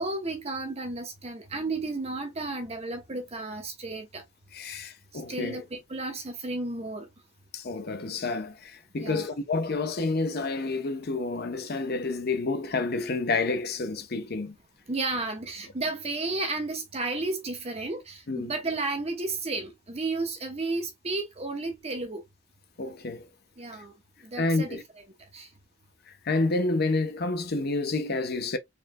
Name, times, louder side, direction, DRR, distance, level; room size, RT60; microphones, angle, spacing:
voice 1, 0.0-4.2 5.1-7.1 9.0-9.3 14.9-22.2 23.6-23.9 24.2-24.8 25.3-25.5, right 3 dB, 30° right, 0.8 m, -33 dB
voice 2, 4.5-5.6 7.5-14.5 18.3-18.5 22.8-23.3 24.4-24.8 26.2-28.6, left 3 dB, 50° left, 0.7 m, -29 dB
4.4 x 3.2 x 2.2 m
head